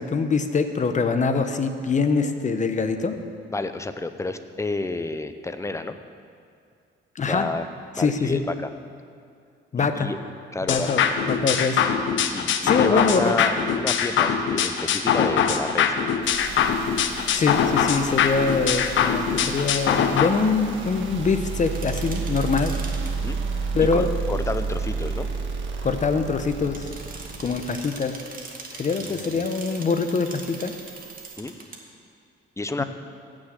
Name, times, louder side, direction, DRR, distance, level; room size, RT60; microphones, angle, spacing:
voice 1, 0.0-3.2 7.1-7.5 8.0-8.4 9.7-10.1 10.7-11.9 12.6-13.4 17.3-22.7 23.7-24.1 25.8-26.9 27.4-28.2 28.8-30.7 32.8-32.9, left 4 dB, 40° left, 8 dB, 1.0 m, -24 dB
voice 2, 3.5-6.0 7.2-7.7 7.9-8.7 9.8-10.2 10.5-10.9 12.3-16.1 23.2-23.4 23.8-25.3 29.0-29.4 31.4-31.5 32.6-32.8, left 2 dB, 15° left, 9 dB, 0.8 m, -30 dB
sound 1, 10.7-20.3, left 7 dB, 75° left, 0.9 m, -23 dB
sound 2, 16.2-31.4, right 4 dB, 75° right, 1.6 m, -32 dB
sound 3, 21.7-23.1 26.5-31.8, right 3 dB, 45° right, 2.0 m, -41 dB
16.0 x 6.5 x 7.5 m, 2.4 s
cardioid pair, 90°, 20 cm